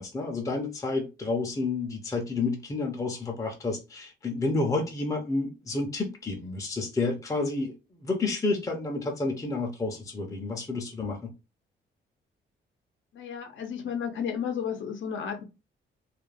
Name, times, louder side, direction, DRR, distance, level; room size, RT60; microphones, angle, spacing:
voice 1, 0.0-11.3, left 3 dB, 15° left, 0.5 m, -30 dB
voice 2, 13.1-15.4, left 7 dB, 70° left, 0.6 m, -33 dB
2.4 x 2.2 x 3.2 m
cardioid pair, 105°, 20 cm